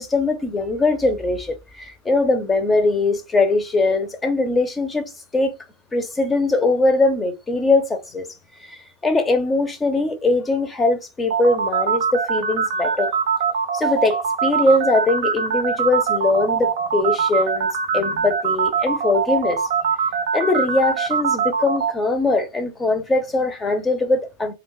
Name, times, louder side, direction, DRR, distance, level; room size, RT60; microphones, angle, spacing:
voice 1, 0.0-5.5 5.9-8.3 8.6-13.1 13.7-17.7 17.9-19.6 20.3-24.5, left 2 dB, 15° left, 0.6 m, -21 dB
sound 1, 11.3-21.9, right 6 dB, 55° right, 0.5 m, -22 dB
2.4 x 2.3 x 3.8 m
figure-of-eight pair, 90°, 0 cm